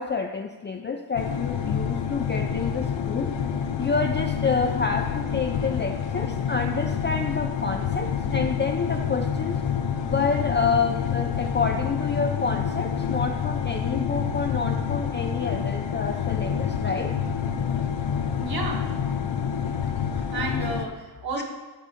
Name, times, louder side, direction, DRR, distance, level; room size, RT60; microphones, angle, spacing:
voice 1, 0.0-3.3 3.8-9.6 10.0-17.1 21.4-21.5, left 4 dB, 25° left, 3 dB, 0.4 m, -28 dB
sound 1, 1.2-20.9, left 7 dB, 80° left, 0.7 m, -28 dB
voice 2, 18.4-18.8 20.0-21.4, right 2 dB, 55° right, 0 dB, 1.6 m, -32 dB
10.0 x 4.0 x 4.9 m, 1.2 s
wide cardioid pair, 110°, 44 cm